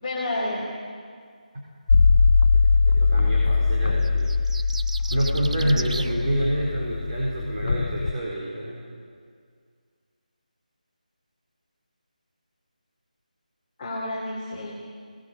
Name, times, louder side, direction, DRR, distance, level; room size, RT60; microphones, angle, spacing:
voice 1, 0.0-0.7 5.5-5.8 13.8-14.8, left 1 dB, 20° left, -7 dB, 2.9 m, -30 dB
sound 1, 1.9-8.1, left 4 dB, 50° left, 0.7 m, -21 dB
voice 2, 2.8-4.3 5.1-8.8, right 1 dB, 40° right, -4 dB, 4.3 m, -27 dB
sound 2, 4.0-6.1, right 3 dB, 60° right, 1.0 m, -36 dB
20.0 x 19.0 x 8.1 m, 2.1 s
figure-of-eight pair, 170°, 5 cm